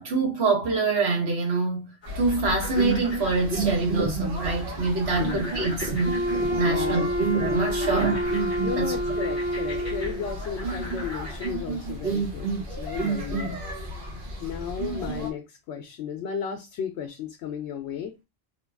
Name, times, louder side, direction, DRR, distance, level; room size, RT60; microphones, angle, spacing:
voice 1, 0.0-6.2 6.5-7.1 7.4-8.2 8.8-9.0, right 3 dB, 70° right, 1.5 m, -25 dB
sound 1, 2.0-11.5, left 2 dB, 25° left, 1.3 m, -42 dB
sound 2, 2.1-15.3, right 3 dB, 55° right, 1.1 m, -31 dB
voice 2, 5.2-5.5 6.6-7.1 7.8-8.0 8.6-13.6 14.4-18.2, left 7 dB, 90° left, 0.9 m, -34 dB
Wind instrument woodwind instrument, 6.0-10.3, equal, 50° left, 0.8 m, -28 dB
3.1 x 2.2 x 3.4 m
omnidirectional pair, 1.1 m